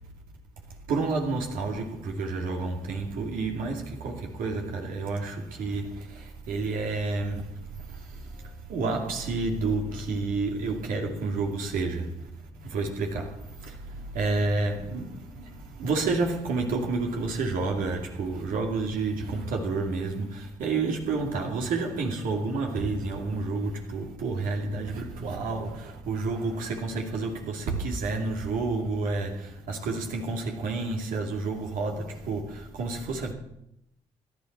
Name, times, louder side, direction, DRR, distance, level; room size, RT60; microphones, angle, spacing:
voice 1, 0.9-7.5 8.7-12.2 12.6-33.3, right 3 dB, 70° right, 2.4 m, -30 dB
17.0 x 11.5 x 4.4 m
hypercardioid pair, 45°, 15 cm